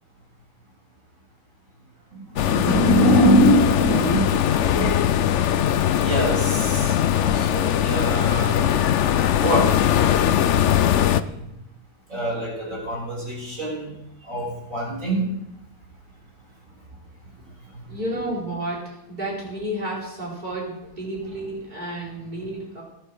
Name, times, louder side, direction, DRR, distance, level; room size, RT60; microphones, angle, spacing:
voice 1, 2.1-4.9 5.9-8.7 9.4-10.6 10.9-11.5 12.1-13.9 14.2-15.3 17.7-18.0 22.1-22.2, equal, 45° right, -3 dB, 7.1 m, -24 dB
sound 1, 2.4-11.2, left 10 dB, 85° left, 0.6 m, -20 dB
voice 2, 17.9-22.8, right 1 dB, 25° right, -4 dB, 4.8 m, -31 dB
20.5 x 7.8 x 6.7 m, 0.85 s
omnidirectional pair, 2.0 m